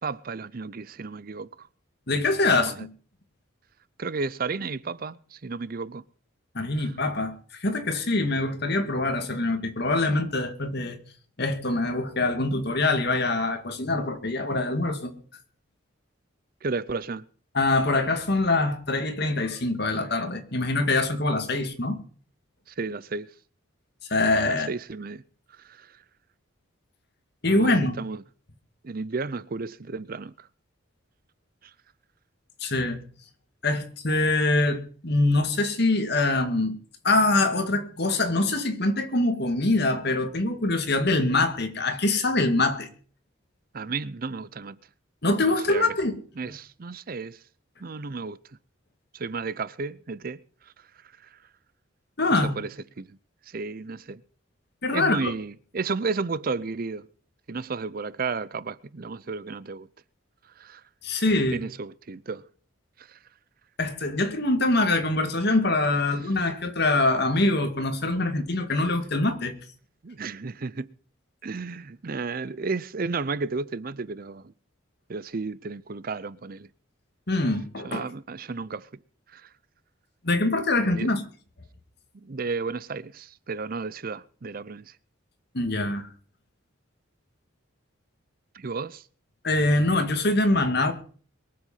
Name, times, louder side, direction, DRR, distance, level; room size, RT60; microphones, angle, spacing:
voice 1, 0.0-1.7 2.5-2.9 4.0-6.0 6.8-6.9 16.6-17.3 22.7-23.3 24.5-25.2 25.6-26.0 27.4-27.7 28.0-28.2 28.8-30.5 31.6-31.7 43.7-44.8 45.4-45.9 46.4-47.4 47.8-48.4 49.1-50.7 51.2-51.4 52.3-53.2 53.5-54.2 54.9-57.1 57.5-59.9 60.6-60.8 61.5-62.5 63.0-63.2 65.9-66.0 70.0-70.9 71.4-74.5 75.1-76.7 77.8-78.9 79.3-79.5 80.9-81.1 82.1-84.9 88.5-89.0, right 4 dB, 45° right, 0.5 m, -33 dB
voice 2, 2.1-2.9 6.5-7.4 7.6-11.0 11.4-15.1 17.5-22.0 24.1-24.7 27.4-28.0 32.6-33.0 33.6-36.8 37.0-42.9 45.2-46.1 46.4-46.5 52.2-52.5 54.8-55.3 61.0-61.6 63.8-69.5 77.3-78.0 80.2-81.2 85.5-86.1 89.4-90.9, left 2 dB, 55° left, 2.2 m, -24 dB
22.5 x 7.8 x 5.6 m
head